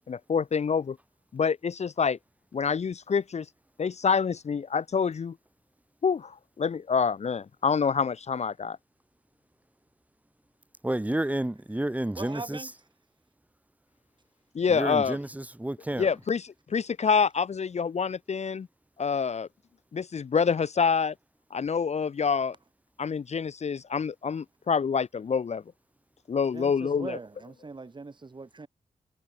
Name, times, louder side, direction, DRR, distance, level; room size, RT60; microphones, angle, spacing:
voice 1, 0.1-1.0 1.3-2.2 2.5-3.5 3.8-5.3 6.0-8.8 14.5-15.2 16.0-18.7 19.0-19.5 19.9-21.1 21.5-22.6 23.0-25.6 26.3-27.2, left 6 dB, 50° left, 0.7 m, -27 dB
voice 2, 10.8-12.7 14.7-16.1, right 1 dB, 10° right, 2.0 m, -30 dB
voice 3, 12.2-12.7 26.5-28.7, right 3 dB, 30° right, 2.3 m, -40 dB
wide cardioid pair, 110°, 15 cm